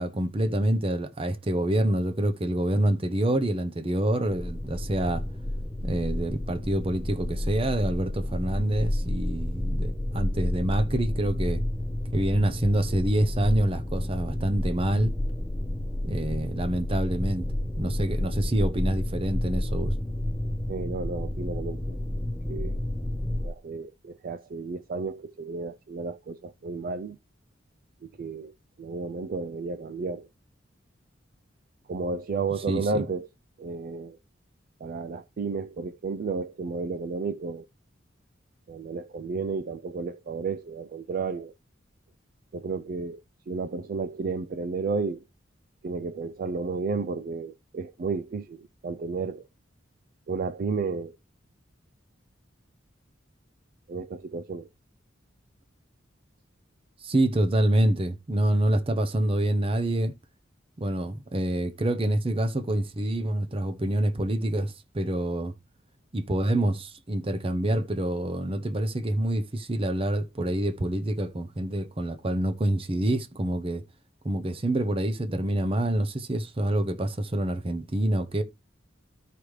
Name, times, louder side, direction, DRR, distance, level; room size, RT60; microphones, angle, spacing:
voice 1, 0.0-5.2 5.8-11.6 12.1-15.1 16.0-17.5 17.8-19.9 32.7-33.0 57.0-60.1 60.8-65.5 66.1-73.8 74.2-78.4, right 1 dB, 30° right, 0.7 m, -26 dB
sound 1, 4.3-23.5, left 1 dB, 5° left, 1.2 m, -30 dB
voice 2, 20.7-22.0 22.5-22.8 23.4-27.2 28.0-28.5 28.8-30.3 31.9-33.3 33.6-34.2 34.8-37.7 38.7-41.5 42.5-45.2 45.8-49.4 50.3-51.2 53.9-54.7, right 4 dB, 45° right, 0.3 m, -32 dB
13.0 x 5.0 x 3.2 m
head